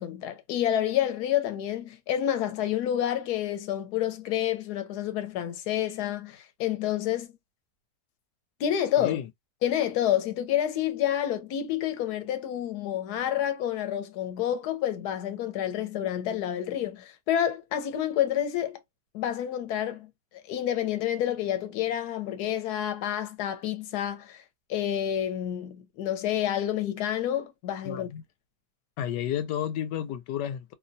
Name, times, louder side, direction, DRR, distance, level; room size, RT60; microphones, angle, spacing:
voice 1, 0.0-7.3 8.6-9.2 9.6-18.8 19.1-24.4 24.7-28.1, left 11 dB, 70° left, 1.2 m, -29 dB
voice 2, 9.0-9.3 27.8-28.2 29.0-30.7, left 10 dB, 90° left, 1.2 m, -31 dB
2.9 x 2.2 x 2.6 m
omnidirectional pair, 1.8 m